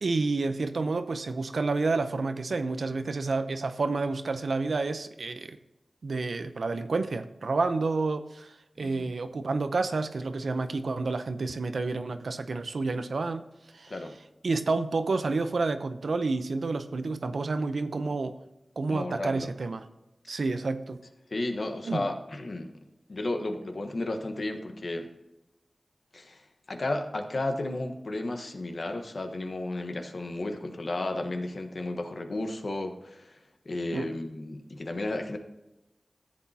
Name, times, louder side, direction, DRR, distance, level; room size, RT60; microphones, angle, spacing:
voice 1, 0.0-5.6 6.0-13.5 13.7-13.9 14.4-18.4 18.8-19.8 20.3-21.0 21.9-22.1 33.9-34.1, right 3 dB, 85° right, 9 dB, 0.7 m, -29 dB
voice 2, 8.8-9.1 13.9-14.2 18.9-19.5 21.3-22.7 23.1-25.1 26.1-33.4 33.6-35.4, left 2 dB, 65° left, 5 dB, 1.2 m, -33 dB
14.0 x 8.2 x 2.8 m, 0.98 s
wide cardioid pair, 55°, 0 cm